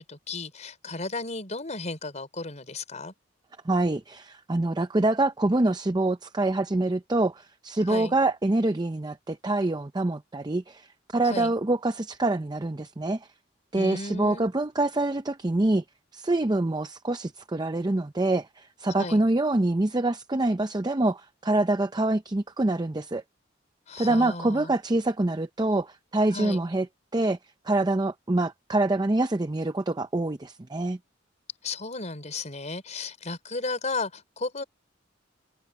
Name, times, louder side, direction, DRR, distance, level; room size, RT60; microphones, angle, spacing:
voice 1, 0.0-3.1 7.9-8.2 11.2-11.5 13.7-14.5 18.9-19.2 23.9-24.7 26.3-26.6 31.6-34.6, left 3 dB, 40° left, 4.3 m, -34 dB
voice 2, 3.6-13.3 13.7-15.8 16.1-23.2 24.0-26.9 27.1-27.4 27.6-31.0, right 2 dB, 20° right, 0.6 m, -25 dB
head